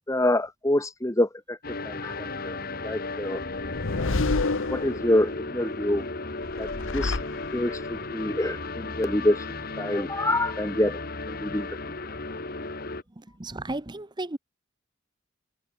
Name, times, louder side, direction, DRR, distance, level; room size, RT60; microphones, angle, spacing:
voice 1, 0.0-2.6 2.8-3.4 4.0-4.2 4.7-6.0 6.6-7.2 7.5-9.4 9.8-11.0 11.3-11.7, left 1 dB, 15° left, 1.4 m, -26 dB
sound 1, 1.6-13.0, left 3 dB, 50° left, 2.1 m, -35 dB
sound 2, 3.4-5.4 6.4-7.9, left 3 dB, 85° left, 1.1 m, -29 dB
voice 2, 13.4-14.4, right 2 dB, 20° right, 0.9 m, -33 dB
open air
head